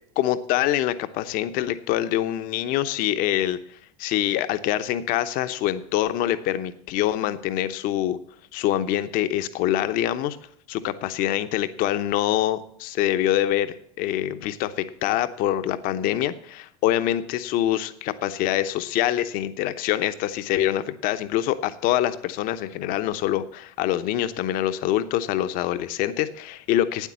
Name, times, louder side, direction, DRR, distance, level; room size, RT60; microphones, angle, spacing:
voice 1, 0.2-3.6 4.0-8.2 8.5-10.4 10.7-27.1, left 12 dB, 55° left, 12 dB, 0.9 m, -25 dB
9.1 x 8.3 x 7.4 m, 0.68 s
hypercardioid pair, 75°, 18 cm